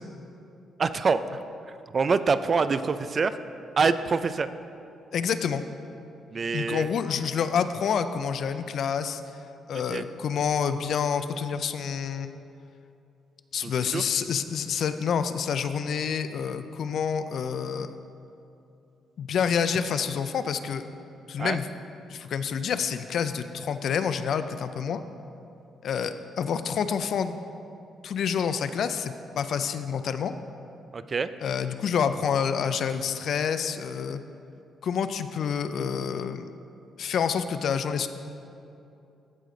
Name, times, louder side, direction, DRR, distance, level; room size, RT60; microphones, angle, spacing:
voice 1, 0.8-1.4 1.7-3.4 3.8-4.5 6.3-6.9 9.7-10.0 13.6-14.0 21.4-21.6 30.9-31.3, right 4 dB, 40° right, 12 dB, 0.4 m, -26 dB
voice 2, 5.1-5.7 6.5-9.2 9.7-12.4 13.5-18.0 19.2-20.8 21.3-21.7 22.1-25.0 25.8-27.4 28.0-30.3 31.4-34.2 34.8-36.5 37.0-38.1, left 7 dB, 65° left, 10 dB, 0.4 m, -28 dB
15.0 x 5.0 x 3.8 m, 2.7 s
cardioid pair, 90°, 0 cm